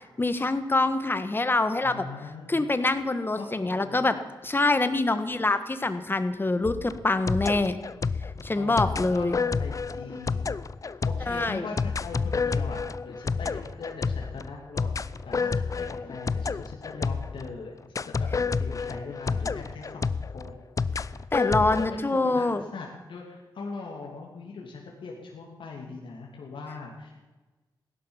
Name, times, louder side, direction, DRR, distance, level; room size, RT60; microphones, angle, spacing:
voice 1, 0.2-2.0 2.5-4.2 4.4-7.8 8.4-9.3 11.3-11.6 21.3-22.6, left 2 dB, 25° left, 11 dB, 1.4 m, -25 dB
voice 2, 1.8-2.6 3.4-4.2 8.5-10.5 10.8-20.6 21.0-21.2 21.6-27.2, left 4 dB, 75° left, -2 dB, 2.8 m, -41 dB
sound 1, 6.6-17.5 18.0-21.9, left 4 dB, 40° left, 0.6 m, -29 dB
16.5 x 11.5 x 7.2 m, 1.2 s
cardioid pair, 75°, 9 cm